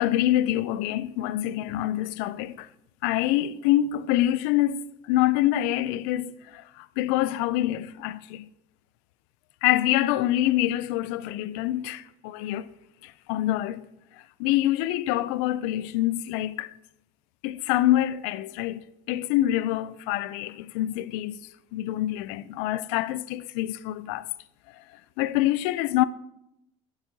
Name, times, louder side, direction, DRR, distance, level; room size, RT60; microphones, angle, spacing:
voice 1, 0.0-2.7 3.0-8.5 9.6-12.7 13.0-13.8 14.4-16.7 17.4-21.4 21.7-24.3 25.2-26.0, left 14 dB, 80° left, 0.4 m, -26 dB
12.0 x 8.5 x 2.8 m
supercardioid pair, 115°, 16 cm